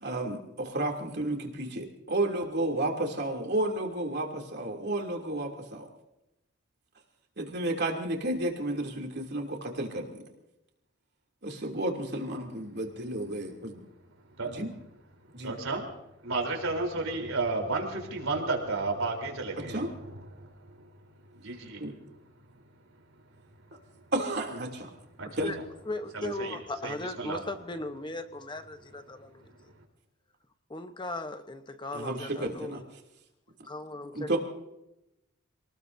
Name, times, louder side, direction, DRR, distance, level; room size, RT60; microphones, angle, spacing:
voice 1, 0.0-5.9 7.4-10.2 11.4-13.8 14.4-14.7 15.3-15.6 19.7-19.9 21.8-21.9 24.1-24.9 25.4-25.5 31.9-32.8 34.1-34.4, right 1 dB, 50° right, 2 dB, 2.9 m, -32 dB
voice 2, 15.4-15.9 16.2-20.5 21.4-21.8 25.2-25.3 26.1-26.6 26.8-27.4, right 3 dB, 80° right, 2 dB, 3.7 m, -32 dB
voice 3, 25.2-25.6 25.9-29.7 30.7-32.8 33.6-34.4, left 2 dB, 20° left, 8 dB, 0.9 m, -38 dB
27.5 x 19.5 x 2.7 m, 0.90 s
head